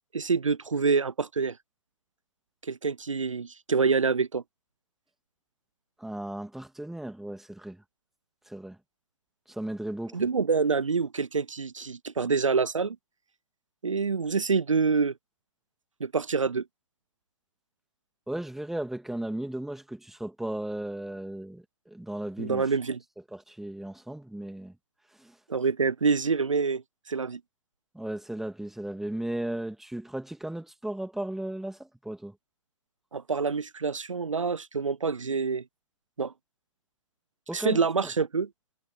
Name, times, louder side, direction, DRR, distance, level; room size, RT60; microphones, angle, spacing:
voice 1, 0.0-1.6 2.6-4.4 10.1-13.0 13.8-15.1 16.0-16.6 22.4-23.0 25.5-26.8 27.1-27.4 33.1-35.6 36.2-36.3 37.5-38.5, right 5 dB, 75° right, 0.7 m, -26 dB
voice 2, 6.0-7.8 8.5-8.8 9.5-10.2 18.3-22.7 23.3-24.8 25.2-25.4 27.9-32.3 37.5-37.8, right 1 dB, ahead, 2.6 m, -35 dB
figure-of-eight pair, 120°, 17 cm